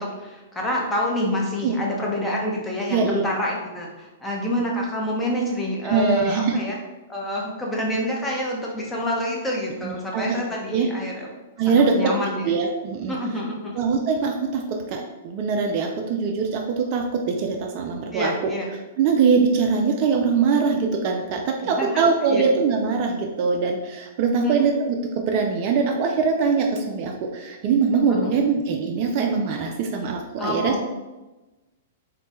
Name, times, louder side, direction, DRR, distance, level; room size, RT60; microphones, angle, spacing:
voice 1, 0.0-6.8 7.1-11.3 11.9-12.4 13.1-13.8 18.1-18.7 21.6-22.0 22.3-22.4 24.4-24.6 28.2-28.3 30.4-30.8, left 1 dB, 10° left, -2 dB, 0.7 m, -27 dB
voice 2, 2.9-3.3 5.8-6.6 9.8-10.4 10.7-10.9 11.6-12.1 12.4-13.1 13.8-18.3 19.0-30.7, right 5 dB, 45° right, 2 dB, 0.3 m, -22 dB
3.1 x 2.1 x 2.9 m, 1.1 s
hypercardioid pair, 110°, 0 cm